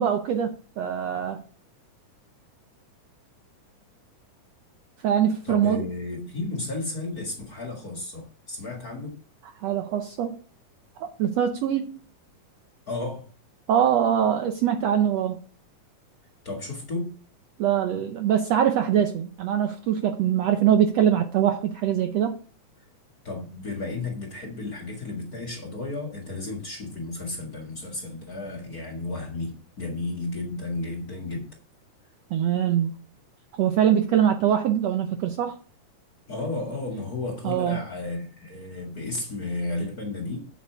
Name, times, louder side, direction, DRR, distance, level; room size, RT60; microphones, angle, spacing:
voice 1, 0.0-1.4 5.0-5.8 9.6-10.3 11.0-12.0 13.7-15.4 17.6-22.4 32.3-32.9 33.6-35.6 37.4-37.8, right 9 dB, 75° right, 1.6 m, -23 dB
voice 2, 5.4-9.2 12.9-13.2 16.4-17.1 23.2-31.5 36.3-40.4, left 2 dB, 35° left, 1.8 m, -33 dB
8.4 x 7.9 x 4.6 m
omnidirectional pair, 3.7 m